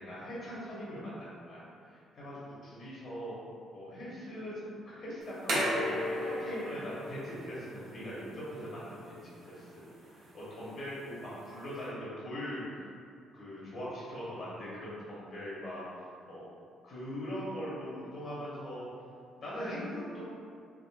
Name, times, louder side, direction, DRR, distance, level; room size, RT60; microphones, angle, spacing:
voice 1, 0.0-3.4 3.7-12.8 13.3-15.8 16.3-16.5 16.8-18.9 19.4-20.2, equal, 60° left, -8 dB, 0.9 m, -41 dB
sound 1, 5.2-11.9, equal, 85° right, 0.7 m, -37 dB
3.5 x 2.0 x 2.4 m, 2.4 s
supercardioid pair, 75°, 0 cm